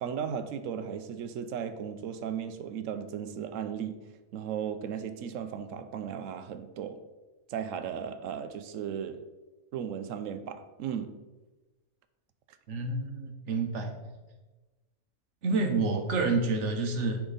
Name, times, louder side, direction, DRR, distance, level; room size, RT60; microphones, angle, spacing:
voice 1, 0.0-4.0 4.3-7.0 7.5-9.2 9.7-11.2, right 8 dB, 90° right, 10 dB, 1.0 m, -36 dB
voice 2, 12.7-13.9 15.4-17.2, right 3 dB, 70° right, 3 dB, 1.2 m, -28 dB
9.7 x 3.6 x 3.9 m, 1.2 s
omnidirectional pair, 1.3 m